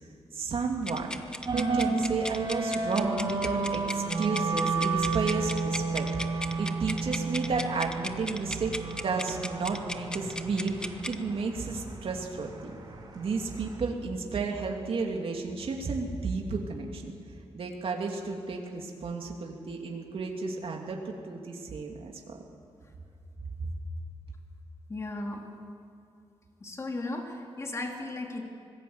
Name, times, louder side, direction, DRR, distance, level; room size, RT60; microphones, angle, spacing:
voice 1, 0.3-1.2 1.5-12.8 13.1-17.2 17.5-22.4 23.6-23.7, right 4 dB, 60° right, 1 dB, 2.7 m, -32 dB
sound 1, 0.8-11.2, left 1 dB, 10° left, 0.9 m, -37 dB
sound 2, 1.5-13.8, right 4 dB, 45° right, 3.7 m, -32 dB
voice 2, 24.9-25.5 26.6-28.4, left 2 dB, 25° left, 2 dB, 2.6 m, -36 dB
25.5 x 19.5 x 8.0 m, 2.4 s
wide cardioid pair, 165°, 11 cm